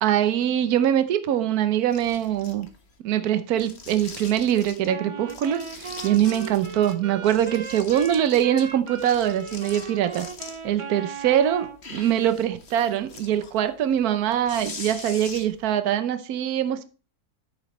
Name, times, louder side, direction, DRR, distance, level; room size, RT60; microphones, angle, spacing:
voice 1, 0.0-2.7 3.0-10.3 10.6-11.6 11.9-16.8, right 10 dB, 75° right, 1.3 m, -23 dB
sound 1, 1.9-3.0 3.5-4.9 5.3-6.9 7.2-10.8 11.2-15.7, left 4 dB, 45° left, 1.7 m, -42 dB
Wind instrument woodwind instrument, 4.9-11.8, right 6 dB, 40° right, 0.4 m, -38 dB
10.5 x 8.6 x 3.1 m
omnidirectional pair, 1.6 m